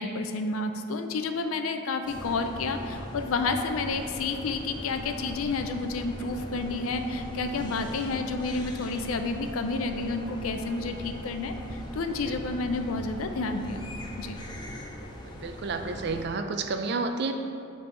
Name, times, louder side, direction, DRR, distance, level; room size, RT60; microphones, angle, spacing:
voice 1, 0.0-13.9 14.2-14.4, left 3 dB, 80° left, 7 dB, 0.5 m, -30 dB
sound 1, 2.1-16.3, left 1 dB, 20° left, 0.5 m, -40 dB
voice 2, 15.2-17.3, right 4 dB, 50° right, 6 dB, 0.4 m, -31 dB
7.2 x 3.4 x 4.4 m, 2.6 s
head